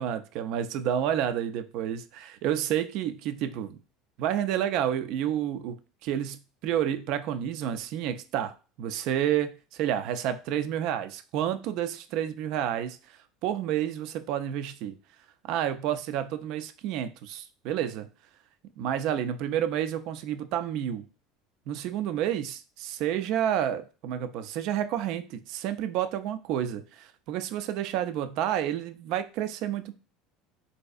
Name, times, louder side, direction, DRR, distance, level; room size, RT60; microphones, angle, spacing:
voice 1, 0.0-3.8 4.2-5.8 6.0-13.0 13.4-14.9 15.4-18.1 18.8-21.0 21.7-30.0, right 10 dB, 60° right, 0.4 m, -30 dB
4.0 x 2.6 x 2.3 m
hypercardioid pair, 75°, 0 cm